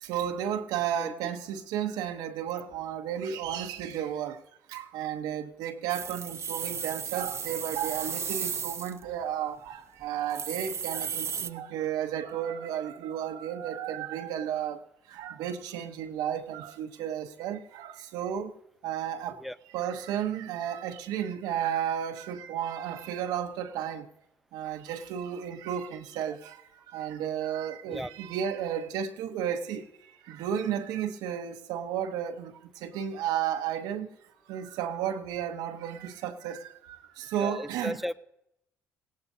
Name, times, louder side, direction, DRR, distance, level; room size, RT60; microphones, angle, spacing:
voice 1, 0.0-4.4 4.7-14.8 15.1-18.5 18.8-19.4 19.7-24.1 24.5-26.6 26.9-34.1 34.5-38.0, right 9 dB, 85° right, 5 dB, 0.9 m, -33 dB
voice 2, 1.0-1.3 19.4-19.6 27.9-28.1 37.4-38.1, equal, ahead, 16 dB, 0.4 m, -35 dB
sound 1, 5.9-9.0 9.6-9.7 10.0-10.1 10.3-11.5, right 7 dB, 45° right, 0.8 m, -34 dB
20.0 x 17.0 x 2.7 m, 0.82 s
supercardioid pair, 80°, 7 cm